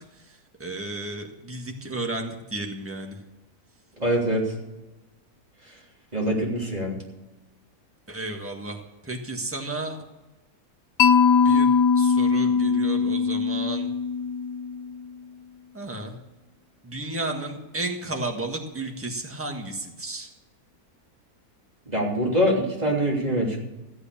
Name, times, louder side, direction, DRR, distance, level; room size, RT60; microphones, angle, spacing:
voice 1, 0.1-3.2 8.1-10.0 11.4-11.7 11.9-13.9 15.7-16.2 16.8-20.3, right 2 dB, 10° right, 2 dB, 1.5 m, -33 dB
voice 2, 4.0-4.6 6.1-7.0 21.9-23.6, equal, 25° right, -3 dB, 3.4 m, -24 dB
Mallet percussion, 11.0-15.0, left 6 dB, 70° left, 1.0 m, -21 dB
15.0 x 8.1 x 7.0 m, 1.0 s
omnidirectional pair, 1.6 m